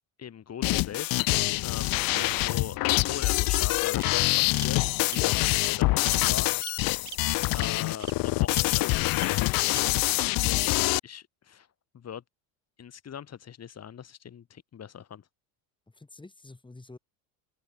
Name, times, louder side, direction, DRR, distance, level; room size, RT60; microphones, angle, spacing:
voice 1, 0.2-1.2 1.6-6.5 7.5-10.0 11.0-11.7 11.9-12.2 12.8-15.2, left 8 dB, 35° left, 4.9 m, -41 dB
sound 1, 0.6-11.0, left 21 dB, 55° left, 0.6 m, -25 dB
Bird vocalization bird call bird song, 2.1-2.8 3.5-3.6 4.0-4.1 4.6-4.7 5.1-5.2 5.6-5.7 6.0-6.2 6.6-6.7 7.1-7.2 7.6-7.7 8.0-8.1 8.5-8.6 9.2-9.3 9.7-9.8 10.2-10.3, right 10 dB, 40° right, 3.3 m, -41 dB
voice 2, 15.9-17.0, left 2 dB, 10° left, 7.8 m, -48 dB
supercardioid pair, 110°, 42 cm